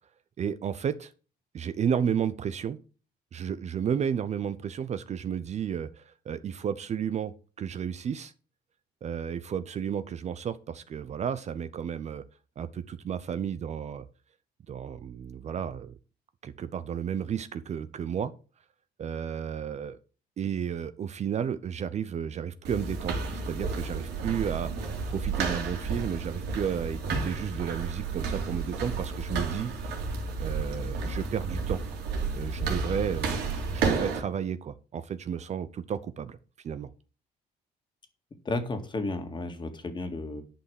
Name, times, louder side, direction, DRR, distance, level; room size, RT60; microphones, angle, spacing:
voice 1, 0.4-1.1 1.5-2.8 3.3-8.3 9.0-12.2 12.6-14.1 14.7-16.0 16.4-18.3 19.0-20.0 20.4-29.7 30.4-31.8 32.3-33.4 33.7-36.4 36.6-36.9, right 8 dB, 40° right, 13 dB, 0.7 m, -32 dB
sound 1, 22.6-34.2, right 4 dB, 80° right, 2.9 m, -31 dB
voice 2, 38.4-40.4, left 2 dB, 25° left, 6 dB, 2.0 m, -33 dB
10.0 x 5.6 x 6.4 m, 0.36 s
cardioid pair, 110°, 17 cm